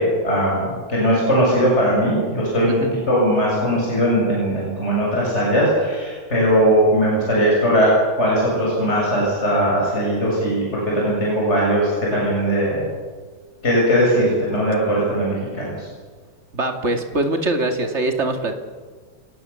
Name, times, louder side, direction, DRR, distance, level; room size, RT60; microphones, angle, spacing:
voice 1, 0.0-2.7 3.1-7.9 8.2-10.6 10.9-12.9 13.6-15.9, equal, 30° left, -4 dB, 7.6 m, -19 dB
voice 2, 16.5-18.5, right 2 dB, 30° right, 5 dB, 2.5 m, -22 dB
29.0 x 18.5 x 7.1 m, 1.5 s
omnidirectional pair, 2.3 m